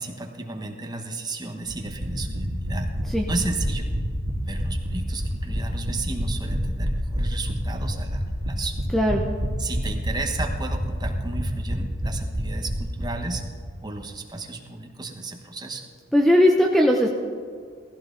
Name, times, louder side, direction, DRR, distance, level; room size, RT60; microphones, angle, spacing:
voice 1, 0.0-2.9 3.2-3.9 4.5-8.8 9.6-13.4 13.8-15.8, right 3 dB, 20° right, 3 dB, 1.1 m, -33 dB
sound 1, 1.7-13.4 13.7-13.8 14.0-14.1, equal, 65° right, 2.5 m, -28 dB
voice 2, 16.1-17.1, equal, ahead, 0 dB, 0.7 m, -18 dB
17.0 x 15.0 x 3.9 m, 2.1 s
head